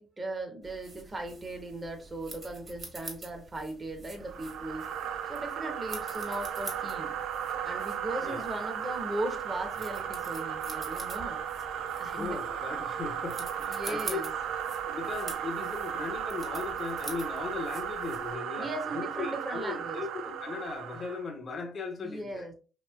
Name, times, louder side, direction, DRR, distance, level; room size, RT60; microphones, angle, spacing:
voice 1, 0.0-4.9 5.3-7.2 7.6-11.4 12.0-12.4 13.6-14.3 18.6-20.0 22.0-22.5, right 1 dB, 25° right, 0.7 m, -38 dB
sound 1, 0.6-18.3, right 3 dB, 45° right, 1.1 m, -47 dB
sound 2, 4.2-21.3, right 8 dB, 85° right, 0.3 m, -35 dB
voice 2, 12.1-14.2 14.9-22.5, left 4 dB, 45° left, 0.5 m, -38 dB
3.0 x 2.8 x 2.2 m
cardioid pair, 90°, 0 cm